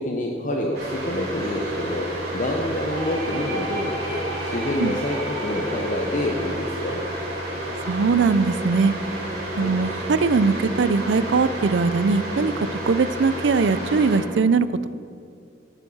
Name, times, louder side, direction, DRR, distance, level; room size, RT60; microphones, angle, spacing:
voice 1, 0.0-7.0 9.5-9.7, left 1 dB, 45° left, 0 dB, 0.9 m, -27 dB
sound 1, 0.7-14.2, right 1 dB, 60° right, 3.5 m, -31 dB
sound 2, 2.7-8.4, right 1 dB, 35° right, 2.7 m, -37 dB
voice 2, 7.9-8.9 9.6-12.5 12.9-14.9, right 4 dB, 75° right, 15 dB, 0.5 m, -20 dB
12.5 x 9.1 x 5.6 m, 2.4 s
head